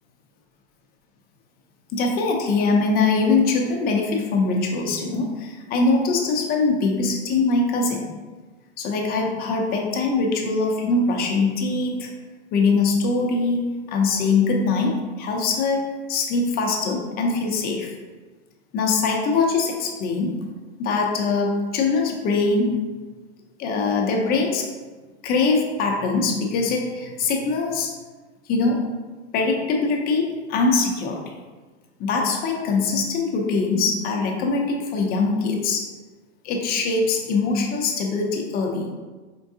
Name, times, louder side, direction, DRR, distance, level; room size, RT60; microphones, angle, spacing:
voice 1, 1.9-8.1 8.8-12.1 12.5-17.9 18.7-20.4 20.8-22.8 23.6-24.7 25.2-27.9 28.5-28.8 29.3-31.3 32.0-35.9 36.4-38.9, left 3 dB, 25° left, 1 dB, 0.6 m, -22 dB
4.5 x 3.5 x 2.6 m, 1.3 s
supercardioid pair, 135°, 34 cm